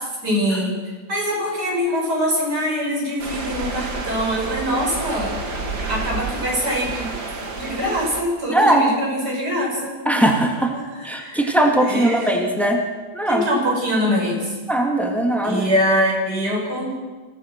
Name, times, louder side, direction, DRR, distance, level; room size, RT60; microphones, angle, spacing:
voice 1, 0.2-0.8 1.1-5.4 5.9-7.1 7.5-9.9 10.7-12.3 13.3-14.5 15.4-16.9, equal, 60° right, -1 dB, 6.4 m, -23 dB
sound 1, 3.2-8.2, right 3 dB, 80° right, 2.9 m, -29 dB
voice 2, 8.5-8.9 10.1-10.7 11.0-12.8 13.1-13.4 14.7-15.6, right 1 dB, ahead, 1 dB, 2.5 m, -19 dB
26.5 x 17.5 x 6.1 m, 1.3 s
omnidirectional pair, 2.0 m